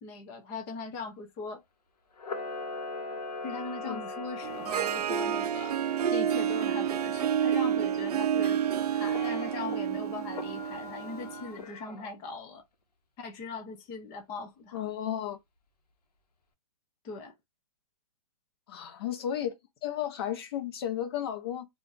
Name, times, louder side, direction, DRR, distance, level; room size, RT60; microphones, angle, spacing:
voice 1, 0.0-1.6 3.4-5.8 6.1-12.6 13.2-14.8 17.0-17.3, left 3 dB, 10° left, 0.3 m, -40 dB
Camera, 2.2-5.5 9.0-9.8 10.3-12.1, left 3 dB, 90° left, 0.9 m, -40 dB
Harp, 4.4-11.5, right 9 dB, 80° right, 0.4 m, -29 dB
voice 2, 14.7-15.4 18.7-19.5 19.8-21.7, left 10 dB, 40° left, 0.7 m, -33 dB
2.4 x 2.4 x 3.8 m
hypercardioid pair, 160°, 20 cm